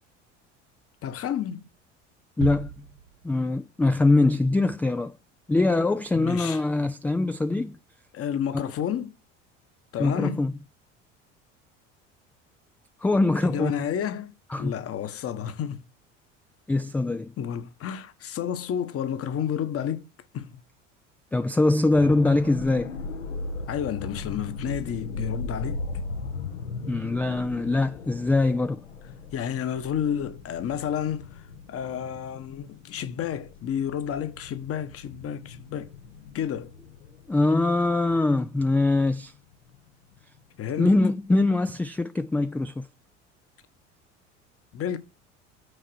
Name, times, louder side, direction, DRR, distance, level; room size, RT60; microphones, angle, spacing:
voice 1, 1.0-1.6 6.1-6.6 8.1-9.2 9.9-10.4 13.4-15.9 17.4-20.1 20.3-20.6 23.7-25.8 29.3-35.9 36.3-36.7 40.6-40.9 44.7-45.0, left 9 dB, 40° left, 1.2 m, -31 dB
voice 2, 2.4-2.8 3.2-5.1 5.5-7.8 10.0-10.5 13.0-13.8 14.5-14.7 16.7-17.3 21.3-22.9 26.9-28.8 37.3-39.3 40.8-42.9, left 2 dB, 5° left, 0.3 m, -23 dB
sound 1, 2.4-3.8, right 9 dB, 70° right, 0.7 m, -36 dB
sound 2, 21.9-39.8 40.2-40.4, left 4 dB, 75° left, 1.1 m, -38 dB
6.6 x 4.7 x 6.3 m
figure-of-eight pair, 65°, 37 cm